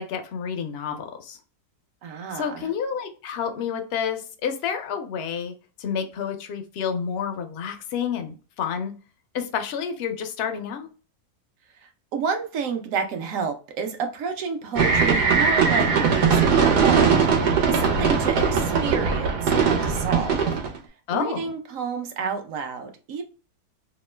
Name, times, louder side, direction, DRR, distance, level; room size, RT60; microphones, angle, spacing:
voice 1, 0.0-1.4 2.3-8.9 9.3-10.9 21.1-21.4, left 7 dB, 75° left, 6 dB, 0.5 m, -29 dB
voice 2, 2.0-2.7 11.8-20.4 21.1-23.2, right 5 dB, 70° right, 5 dB, 0.9 m, -30 dB
sound 1, 14.8-20.8, right 5 dB, 90° right, 1.3 m, -20 dB
2.9 x 2.1 x 3.1 m, 0.36 s
omnidirectional pair, 1.6 m